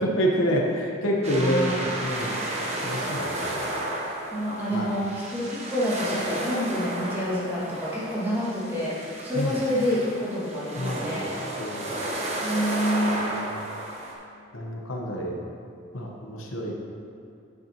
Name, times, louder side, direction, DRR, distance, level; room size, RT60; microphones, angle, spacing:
voice 1, 0.0-2.4 2.8-3.7 4.7-4.9 9.3-9.6 10.8-11.3 11.6-11.9 13.1-13.6 14.5-15.4 15.9-16.7, equal, 75° left, -1 dB, 1.1 m, -28 dB
sound 1, 1.2-14.1, right 1 dB, 30° right, 1.1 m, -33 dB
voice 2, 1.3-2.1 4.3-8.9 9.2-11.3 12.4-13.3, equal, 10° right, -9 dB, 2.1 m, -28 dB
9.3 x 8.2 x 3.0 m, 2.4 s
head